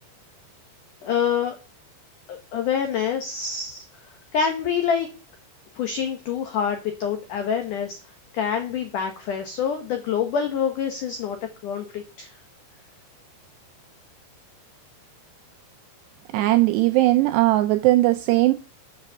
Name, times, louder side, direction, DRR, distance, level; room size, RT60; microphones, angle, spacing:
voice 1, 1.0-1.5 2.3-3.8 4.3-5.1 5.8-8.0 8.3-11.4 11.6-12.3, left 7 dB, 70° left, 2.0 m, -26 dB
voice 2, 16.3-18.5, right 17 dB, 80° right, 2.6 m, -19 dB
8.0 x 6.0 x 6.8 m
omnidirectional pair, 5.1 m